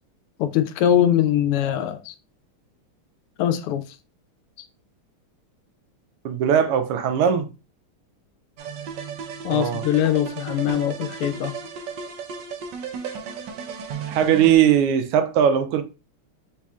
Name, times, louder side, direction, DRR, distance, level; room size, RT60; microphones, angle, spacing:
voice 1, 0.4-2.1 3.4-3.8 9.4-11.5, left 10 dB, 90° left, 1.5 m, -22 dB
voice 2, 6.2-7.5 9.5-9.8 14.1-15.8, right 9 dB, 90° right, 1.6 m, -19 dB
sound 1, 8.6-14.6, right 6 dB, 70° right, 1.1 m, -34 dB
4.9 x 4.2 x 2.3 m
omnidirectional pair, 2.4 m